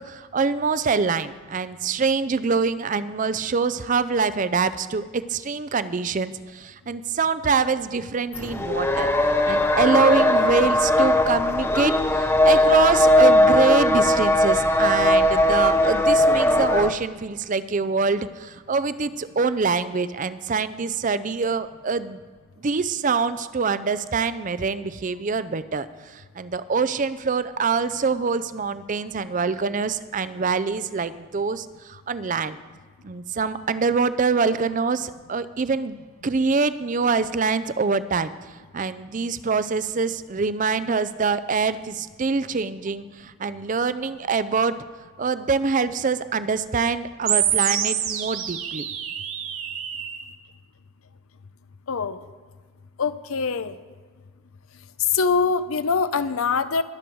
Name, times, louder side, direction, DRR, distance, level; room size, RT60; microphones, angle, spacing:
voice 1, 0.0-9.1 9.4-22.2 22.6-32.6 33.0-36.0 36.2-38.3 38.7-44.7 45.2-48.9, right 4 dB, 40° right, 14 dB, 0.5 m, -25 dB
sound 1, 8.3-16.9, left 1 dB, 10° left, 0.6 m, -19 dB
sound 2, 47.3-50.3, right 9 dB, 80° right, 1.2 m, -26 dB
voice 2, 53.0-53.7 55.1-56.8, left 5 dB, 85° left, 13 dB, 0.6 m, -23 dB
21.5 x 7.8 x 4.6 m, 1.5 s
head